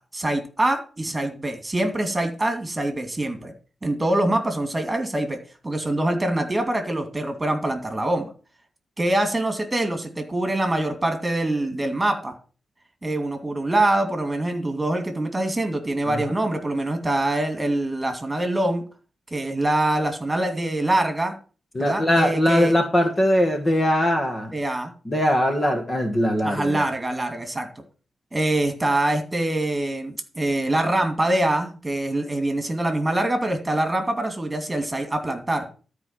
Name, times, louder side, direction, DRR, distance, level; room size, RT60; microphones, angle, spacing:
voice 1, 0.1-3.5 3.8-5.4 5.6-8.3 9.0-12.3 13.0-18.8 19.3-21.3 21.8-22.7 24.5-24.9 26.4-27.7 28.3-35.6, right 1 dB, 15° right, 5 dB, 2.5 m, -24 dB
voice 2, 21.7-24.5 25.0-26.9, equal, 20° left, 4 dB, 1.6 m, -21 dB
13.5 x 4.9 x 7.5 m, 0.37 s
wide cardioid pair, 135°, 0 cm